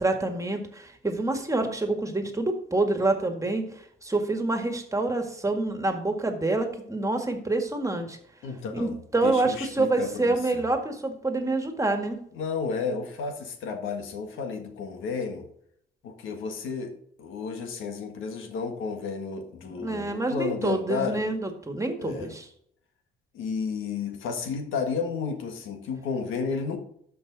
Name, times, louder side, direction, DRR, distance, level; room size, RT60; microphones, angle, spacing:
voice 1, 0.0-8.2 8.7-12.2 19.6-22.5, right 2 dB, 15° right, 5 dB, 1.8 m, -27 dB
voice 2, 8.4-9.0 9.2-10.6 12.3-15.5 16.0-21.3 22.0-22.3 23.3-26.8, left 5 dB, 85° left, 5 dB, 1.7 m, -32 dB
12.5 x 5.5 x 4.0 m, 0.66 s
cardioid pair, 90°, 20 cm